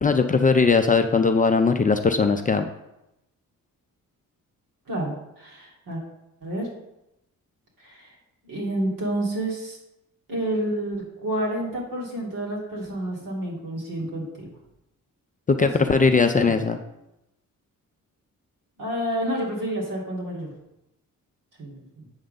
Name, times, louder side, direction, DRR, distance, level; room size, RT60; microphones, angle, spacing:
voice 1, 0.0-2.7 15.5-16.8, left 4 dB, 25° left, 6 dB, 0.4 m, -19 dB
voice 2, 4.9-6.0 6.4-6.7 7.8-8.1 8.4-9.8 10.3-14.5 15.6-16.7 18.8-20.5 21.6-22.1, right 1 dB, 70° right, -3 dB, 2.6 m, -30 dB
7.9 x 3.8 x 6.5 m, 0.88 s
wide cardioid pair, 145°, 33 cm